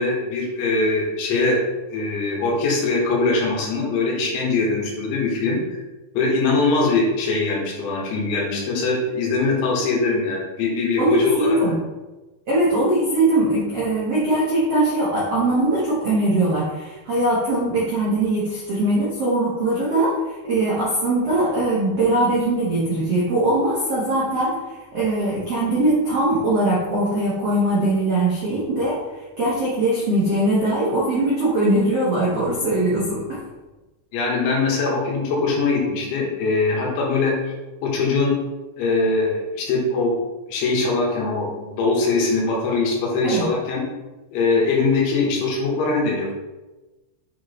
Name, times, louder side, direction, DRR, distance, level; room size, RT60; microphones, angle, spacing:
voice 1, 0.0-5.8 6.2-11.6 34.1-37.3 37.8-38.3 38.8-40.1 40.5-43.8 44.3-46.3, left 3 dB, 80° left, -3 dB, 3.8 m, -22 dB
voice 2, 11.0-11.8 12.5-24.6 24.9-29.0 29.4-33.4 43.2-43.5, right 1 dB, 80° right, -8 dB, 1.4 m, -21 dB
8.8 x 4.3 x 3.3 m, 1.1 s
omnidirectional pair, 5.3 m